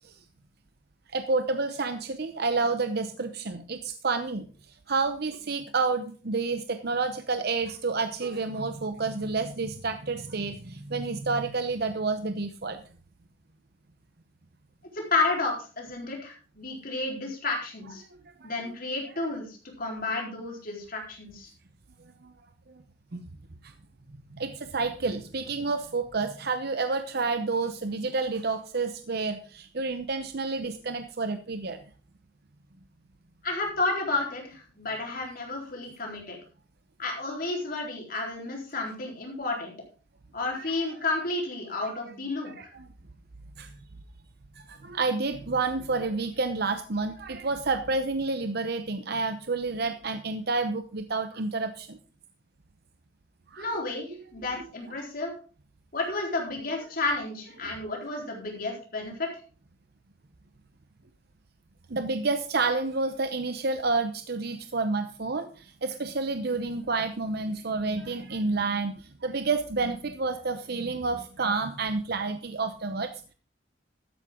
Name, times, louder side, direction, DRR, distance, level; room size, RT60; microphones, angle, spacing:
voice 1, 1.1-4.5 4.9-12.8 18.4-18.5 22.2-22.3 22.7-22.8 23.1-23.2 23.6-23.7 24.3-31.8 40.5-40.6 42.4-42.9 43.6-43.7 44.6-52.0 53.5-53.7 61.9-73.3, right 3 dB, 55° right, 9 dB, 0.8 m, -29 dB
voice 2, 14.9-18.0 18.4-21.5 33.4-36.4 37.0-39.7 40.3-42.7 53.6-55.3 55.9-59.3, left 3 dB, 50° left, 0 dB, 4.0 m, -31 dB
13.0 x 9.7 x 3.7 m, 0.37 s
head